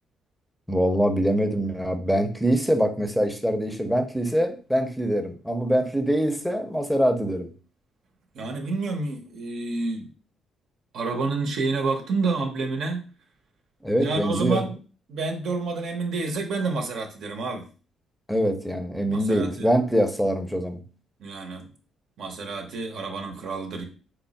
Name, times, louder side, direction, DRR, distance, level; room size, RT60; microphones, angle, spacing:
voice 1, 0.7-7.5 13.8-14.6 18.3-20.8, equal, ahead, 7 dB, 0.6 m, -24 dB
voice 2, 8.3-10.1 10.9-13.0 14.0-14.7 15.1-17.6 19.1-19.7 21.2-21.7 22.2-23.8, right 3 dB, 70° right, 3 dB, 0.7 m, -29 dB
4.3 x 2.0 x 4.0 m, 0.37 s
cardioid pair, 90°, 0 cm